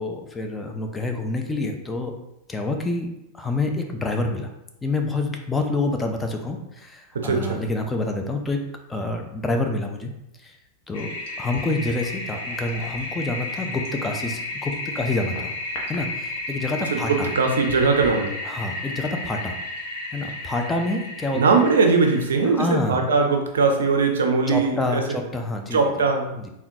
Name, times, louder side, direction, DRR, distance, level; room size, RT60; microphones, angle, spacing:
voice 1, 0.0-2.1 2.5-3.1 3.3-4.5 4.8-8.6 8.9-10.1 10.4-10.5 10.9-11.1 11.4-15.5 15.9-17.3 18.4-19.6 20.1-21.6 22.4-23.1 24.5-26.1 26.3-26.5, left 2 dB, 10° left, 3 dB, 0.4 m, -27 dB
voice 2, 7.1-7.6 16.9-18.3 21.3-25.0 25.7-26.4, right 4 dB, 65° right, 3 dB, 0.4 m, -20 dB
Toilet flush, 10.9-22.5, left 2 dB, 50° left, 0.6 m, -33 dB
3.6 x 2.2 x 2.6 m, 0.85 s
figure-of-eight pair, 90°, 0 cm